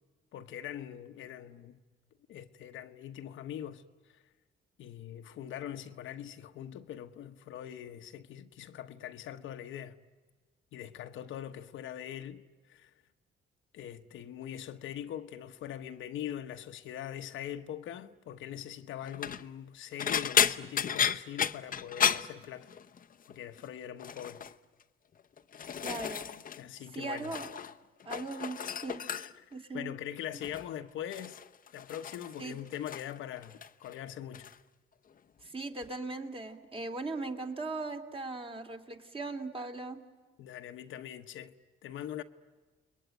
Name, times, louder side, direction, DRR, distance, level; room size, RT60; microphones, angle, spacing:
voice 1, 0.3-1.8 2.3-3.8 4.1-4.2 4.8-10.0 10.7-12.9 13.7-22.7 23.3-24.4 26.6-27.4 29.0-31.4 31.7-34.5 40.4-41.6 41.8-42.2, left 10 dB, 80° left, 1.2 m, -42 dB
sound 1, 19.0-19.4 20.0-23.0 23.3-23.7 24.0-24.5 25.2-26.6 26.9-27.7 28.0-29.5 30.4-30.7 31.1-33.2 33.4-34.0 34.3-34.5 35.8-35.9, left 8 dB, 45° left, 0.8 m, -33 dB
voice 2, 25.8-26.3 26.9-27.5 28.1-29.0 29.5-29.9 32.4-32.6 35.4-40.0, right 3 dB, 25° right, 2.8 m, -39 dB
30.0 x 21.5 x 9.1 m
cardioid pair, 90°, 20 cm